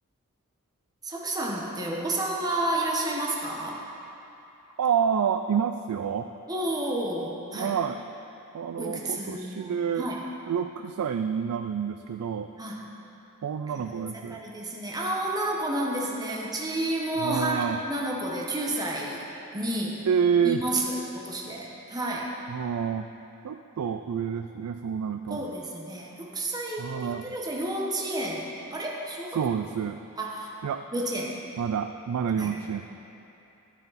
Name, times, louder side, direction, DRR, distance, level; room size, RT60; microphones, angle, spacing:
voice 1, 1.0-3.8 6.5-7.8 8.8-10.2 12.6-12.8 13.8-19.2 19.5-20.1 20.4-22.3 25.3-29.4 30.2-30.5 30.9-31.4 32.4-32.6, right 1 dB, 20° right, -3 dB, 1.1 m, -31 dB
voice 2, 4.8-6.3 7.6-8.0 8.5-10.1 10.5-12.5 13.4-14.4 17.2-17.8 20.1-20.6 22.5-23.1 23.4-25.4 26.8-27.4 29.3-30.0 30.6-30.9 31.6-32.8, right 7 dB, 85° right, 7 dB, 0.4 m, -28 dB
10.5 x 10.5 x 4.1 m, 2.9 s
head